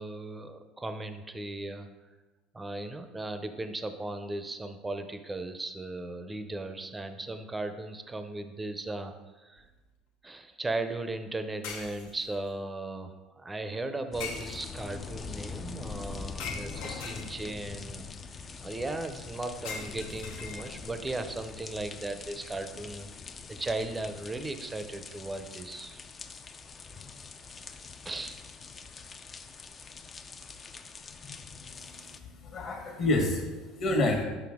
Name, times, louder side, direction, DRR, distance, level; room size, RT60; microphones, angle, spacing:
voice 1, 0.0-1.9 2.5-9.7 10.2-18.1 18.6-23.1 23.5-26.0 28.0-28.4, right 2 dB, 15° right, 8 dB, 0.6 m, -37 dB
sound 1, 9.6-9.8 11.6-12.5 14.2-15.0 16.4-17.7 19.6-21.0, left 5 dB, 80° left, 1.0 m, -41 dB
sound 2, 14.1-32.2, left 5 dB, 30° left, 0.4 m, -44 dB
voice 2, 31.7-34.2, left 2 dB, 45° left, 2 dB, 1.4 m, -29 dB
5.9 x 5.6 x 3.6 m, 1.2 s
supercardioid pair, 105°, 0 cm